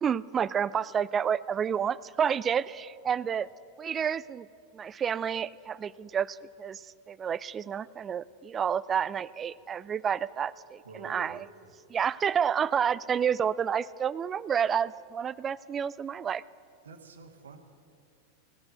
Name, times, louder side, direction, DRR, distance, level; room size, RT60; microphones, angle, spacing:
voice 1, 0.0-3.5 3.8-4.5 4.7-11.4 11.9-16.4, right 7 dB, 25° right, 20 dB, 0.3 m, -30 dB
voice 2, 10.8-11.5 16.8-17.6, right 4 dB, 75° right, 6 dB, 1.4 m, -47 dB
16.5 x 9.5 x 7.7 m, 2.4 s
figure-of-eight pair, 90°, 0 cm